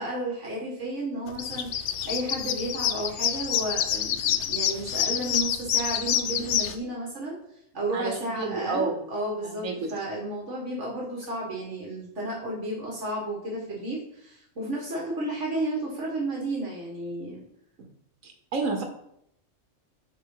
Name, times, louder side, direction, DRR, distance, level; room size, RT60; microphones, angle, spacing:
voice 1, 0.0-7.4 7.7-17.4, right 1 dB, 65° right, -4 dB, 1.9 m, -32 dB
sound 1, 1.3-6.7, left 9 dB, 70° left, 0.8 m, -27 dB
voice 2, 7.9-9.0 9.4-9.7 18.2-18.8, right 3 dB, 85° right, 3 dB, 1.4 m, -30 dB
8.3 x 4.0 x 3.8 m, 0.74 s
omnidirectional pair, 1.4 m